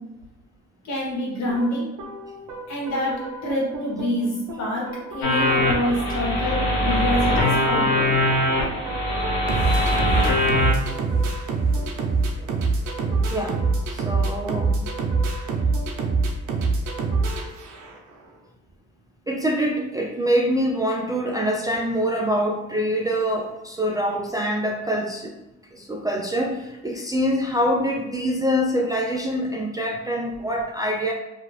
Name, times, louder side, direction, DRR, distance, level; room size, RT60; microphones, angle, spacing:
voice 1, 0.8-1.9 2.7-3.2 3.4-8.1, left 1 dB, 60° left, -4 dB, 1.3 m, -26 dB
sound 1, 1.5-18.1, right 3 dB, 80° right, 0.6 m, -27 dB
sound 2, 5.2-10.7, left 1 dB, 80° left, 0.9 m, -22 dB
voice 2, 13.0-14.8 19.3-25.3 25.7-31.1, equal, 15° right, -1 dB, 0.3 m, -25 dB
2.7 x 2.3 x 3.1 m, 1.0 s
cardioid pair, 90°, 30 cm